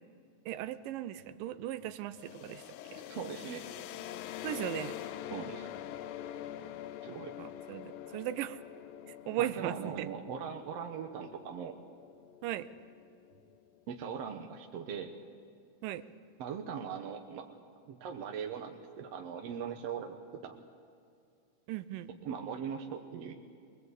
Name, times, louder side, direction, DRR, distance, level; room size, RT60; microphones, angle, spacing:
voice 1, 0.5-2.6 2.9-3.0 4.4-5.0 7.4-8.6 9.1-10.1 12.4-12.7 15.8-16.0 21.7-22.1, right 12 dB, 90° right, 13 dB, 2.4 m, -37 dB
sound 1, 2.1-13.8, left 11 dB, 85° left, 2.3 m, -45 dB
voice 2, 3.1-3.7 5.3-5.7 7.0-7.4 9.4-11.8 13.9-15.1 16.4-17.6 17.9-20.6 22.2-23.3, right 7 dB, 60° right, 3 dB, 1.8 m, -40 dB
23.5 x 21.0 x 8.2 m, 2.4 s
omnidirectional pair, 3.8 m